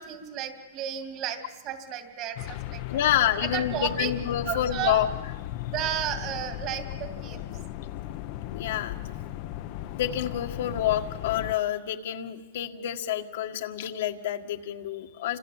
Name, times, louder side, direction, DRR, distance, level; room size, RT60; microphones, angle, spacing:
voice 1, 0.0-3.0 3.4-4.1 4.4-5.1 5.7-7.5, right 10 dB, 35° right, 6 dB, 2.6 m, -33 dB
sound 1, 2.4-11.5, left 13 dB, 40° left, 1.0 m, -36 dB
voice 2, 2.9-5.1 8.5-9.0 9.9-15.4, left 11 dB, 65° left, 4 dB, 1.8 m, -28 dB
29.0 x 26.0 x 7.4 m, 1.3 s
hypercardioid pair, 155°, 0 cm